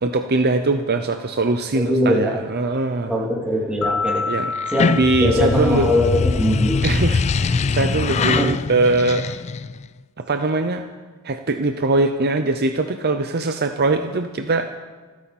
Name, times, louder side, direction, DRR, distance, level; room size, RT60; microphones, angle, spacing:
voice 1, 0.0-3.1 4.3-4.5 4.8-5.9 6.8-9.3 10.2-10.9 11.2-14.7, right 2 dB, 45° right, 7 dB, 0.7 m, -21 dB
voice 2, 1.7-2.4 3.1-4.3 4.7-6.8 8.2-8.5, left 1 dB, 5° right, -3 dB, 3.2 m, -21 dB
sound 1, 3.8-6.6, left 4 dB, 90° left, 1.0 m, -28 dB
sound 2, 4.6-9.9, left 4 dB, 30° left, 0.3 m, -22 dB
27.5 x 9.7 x 4.3 m, 1.4 s
head